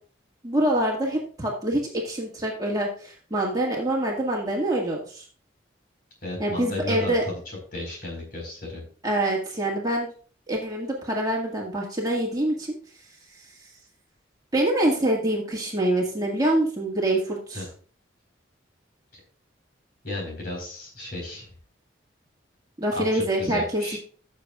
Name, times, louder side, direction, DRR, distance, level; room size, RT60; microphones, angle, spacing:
voice 1, 0.4-5.2 6.4-7.2 9.0-10.1 10.5-12.8 13.3-13.7 14.5-17.7 22.8-24.0, right 1 dB, 20° right, -1 dB, 1.8 m, -25 dB
voice 2, 6.2-7.4 7.7-8.8 17.5-17.7 20.0-21.5 22.9-24.0, left 1 dB, 50° left, 0 dB, 4.7 m, -34 dB
16.0 x 7.0 x 2.4 m, 0.43 s
head